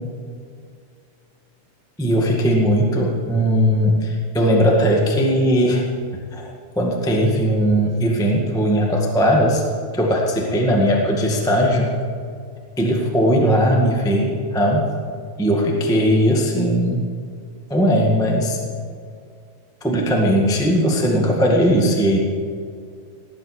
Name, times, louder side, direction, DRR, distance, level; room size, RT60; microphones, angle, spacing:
voice 1, 2.0-5.8 6.3-9.6 9.9-11.9 12.8-14.9 15.4-17.1 17.7-18.6 19.8-22.2, equal, ahead, -1 dB, 0.8 m, -18 dB
19.0 x 9.3 x 6.6 m, 2.2 s
omnidirectional pair, 3.7 m